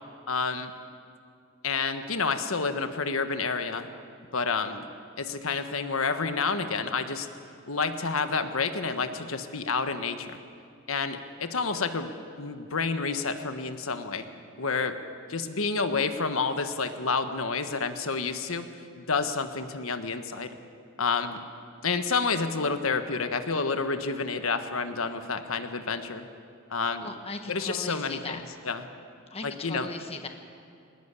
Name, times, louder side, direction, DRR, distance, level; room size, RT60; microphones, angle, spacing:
voice 1, 0.3-0.7 1.6-3.9 4.3-4.9 5.2-7.3 7.7-10.4 10.9-12.1 12.4-14.2 14.6-15.0 15.3-18.7 19.0-20.6 21.0-21.4 21.8-26.3 26.7-27.1 27.5-28.9 29.4-29.9, left 4 dB, 80° left, 8 dB, 1.4 m, -29 dB
voice 2, 27.0-28.4 29.3-30.3, left 3 dB, 30° left, 5 dB, 1.3 m, -38 dB
20.0 x 19.5 x 8.3 m, 2.3 s
head